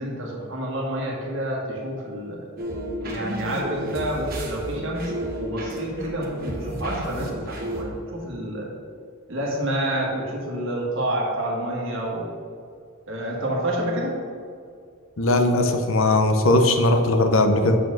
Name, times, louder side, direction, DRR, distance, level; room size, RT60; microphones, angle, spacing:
voice 1, 0.0-2.4 3.1-5.1 5.4-8.7 9.3-12.3 13.1-14.2, right 1 dB, 60° right, -2 dB, 1.7 m, -28 dB
sound 1, 2.6-7.8, right 1 dB, 45° right, 1.3 m, -31 dB
voice 2, 15.2-17.8, left 2 dB, 70° left, 6 dB, 0.8 m, -19 dB
6.5 x 4.3 x 6.6 m, 2.3 s
head